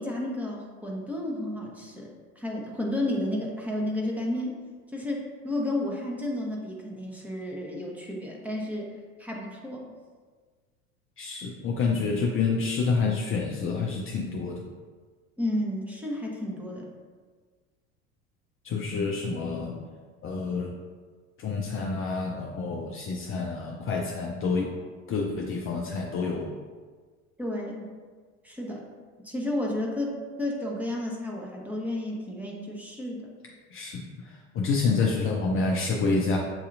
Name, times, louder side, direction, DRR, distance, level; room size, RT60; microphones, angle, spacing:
voice 1, 0.0-2.1 2.4-4.5 4.9-8.9 9.2-9.9 15.4-16.9 27.4-27.8 28.4-28.8 29.2-30.1 30.4-33.2, left 1 dB, 5° right, -2 dB, 1.0 m, -32 dB
voice 2, 11.2-14.6 18.6-19.8 20.2-20.8 21.4-24.7 25.1-26.6 33.7-36.4, left 4 dB, 35° left, -1 dB, 0.6 m, -28 dB
7.7 x 2.7 x 2.5 m, 1.5 s
hypercardioid pair, 80°, 39 cm